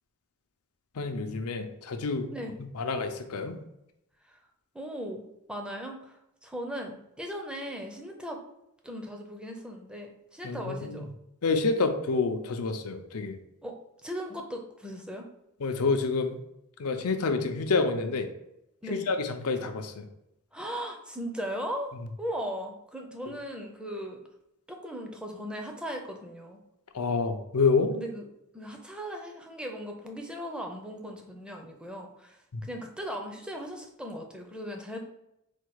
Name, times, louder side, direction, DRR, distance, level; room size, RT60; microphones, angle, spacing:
voice 1, 1.0-2.3 2.7-3.6 10.4-11.0 11.4-13.4 15.6-16.4 16.8-18.3 18.9-20.1 23.3-23.4 26.9-27.9 32.5-32.6, left 4 dB, 75° left, 6 dB, 0.6 m, -28 dB
voice 2, 4.7-6.2 6.4-8.4 8.8-11.1 13.6-13.8 14.0-15.3 18.8-19.1 20.5-24.2 24.7-26.6 27.9-28.3 28.5-32.4 32.7-35.0, equal, 5° right, 2 dB, 0.5 m, -38 dB
4.4 x 2.3 x 4.7 m, 0.83 s
head